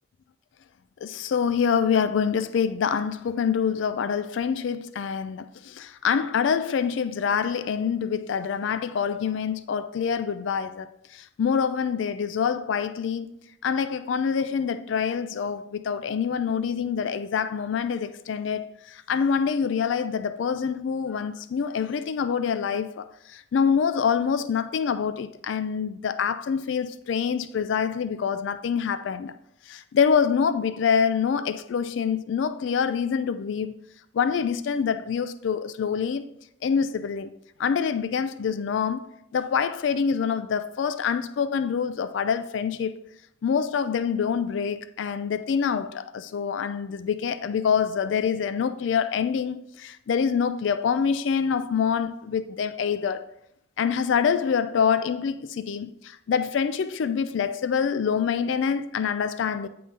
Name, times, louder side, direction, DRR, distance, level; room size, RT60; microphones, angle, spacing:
voice 1, 1.0-10.9 11.1-13.3 13.6-29.3 29.7-33.8 34.1-36.3 36.6-37.3 37.6-39.1 39.3-43.1 43.4-53.2 53.8-59.7, left 6 dB, 75° left, 0.4 m, -26 dB
8.7 x 3.8 x 3.8 m
head